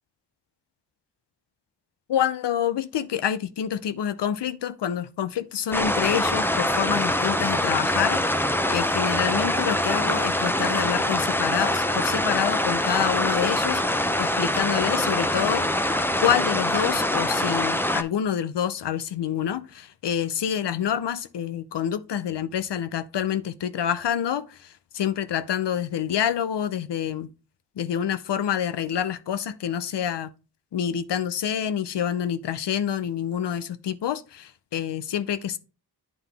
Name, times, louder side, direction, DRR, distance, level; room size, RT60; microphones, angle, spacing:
voice 1, 2.1-15.7 16.2-27.3 27.8-30.3 30.7-35.6, left 9 dB, 85° left, 0.6 m, -27 dB
sound 1, 5.7-18.0, left 1 dB, 5° left, 0.5 m, -24 dB
9.4 x 3.8 x 3.3 m
cardioid pair, 55°, 41 cm